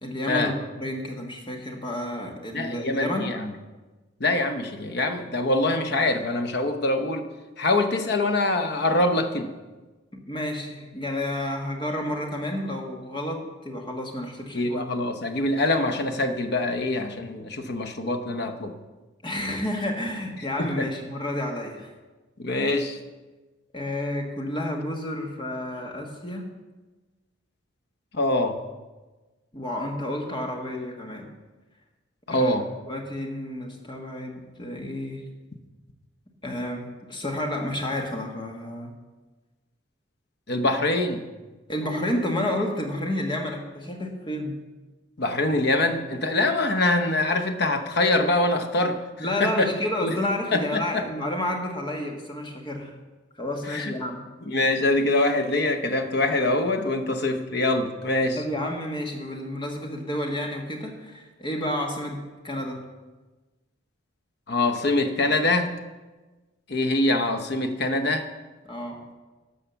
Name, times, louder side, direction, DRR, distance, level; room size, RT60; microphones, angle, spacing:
voice 1, 0.0-3.4 10.1-14.9 19.2-21.9 23.7-26.5 29.5-31.3 32.3-32.6 32.9-35.2 36.4-38.9 41.7-44.6 49.2-52.9 53.4-54.2 58.3-62.8 68.6-69.0, left 1 dB, 25° left, 2 dB, 1.4 m, -30 dB
voice 2, 2.5-3.4 4.2-7.2 7.6-9.5 14.5-18.7 20.6-20.9 22.4-23.0 28.1-28.6 32.3-32.7 40.5-41.3 45.2-49.0 49.4-49.7 50.0-50.1 50.5-51.1 53.7-53.9 54.5-58.4 64.5-65.7 66.7-68.2, left 2 dB, 55° left, 7 dB, 0.9 m, -24 dB
13.0 x 4.9 x 6.9 m, 1.2 s
head